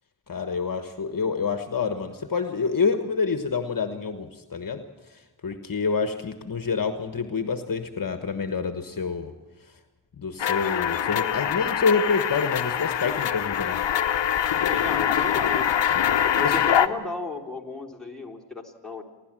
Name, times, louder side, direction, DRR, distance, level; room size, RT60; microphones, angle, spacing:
voice 1, 0.3-4.8 5.1-9.3 10.2-13.8 16.4-16.5, left 5 dB, 50° left, 7 dB, 1.3 m, -27 dB
sound 1, 10.4-16.9, left 9 dB, 85° left, 0.9 m, -24 dB
voice 2, 14.7-15.7 16.4-19.0, left 3 dB, ahead, -2 dB, 3.7 m, -34 dB
29.5 x 12.0 x 7.6 m, 1.1 s
cardioid pair, 60°, 42 cm